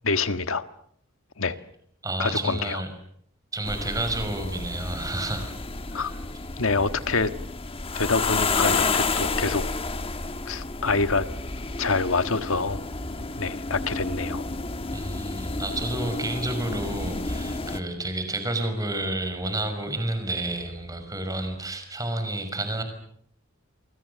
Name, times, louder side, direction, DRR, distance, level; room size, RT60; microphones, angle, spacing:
voice 1, 0.0-0.6 1.4-1.5 2.2-2.8 5.9-6.1 6.6-7.3 7.9-9.6 10.5-11.3 11.8-12.8 13.4-14.4, left 4 dB, 70° left, 1.6 m, -26 dB
voice 2, 2.0-2.9 3.5-5.5 5.9-6.2 14.9-22.8, right 1 dB, 15° right, 5.6 m, -30 dB
sound 1, 3.6-17.8, left 3 dB, 25° left, 1.3 m, -30 dB
29.5 x 24.0 x 6.9 m
head